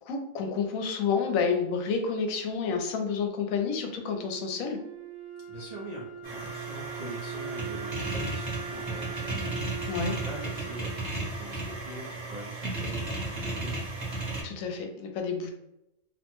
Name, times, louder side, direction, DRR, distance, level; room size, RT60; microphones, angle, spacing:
voice 1, 0.0-4.8 9.9-10.2 14.4-15.5, left 5 dB, 75° left, 4 dB, 1.0 m, -29 dB
Wind instrument woodwind instrument, 3.5-12.5, right 6 dB, 90° right, 1.3 m, -42 dB
voice 2, 5.5-13.8, right 2 dB, 60° right, -6 dB, 0.4 m, -43 dB
sound 1, 6.2-14.4, right 2 dB, 25° right, 0.8 m, -34 dB
2.9 x 2.1 x 2.9 m, 0.86 s
omnidirectional pair, 1.5 m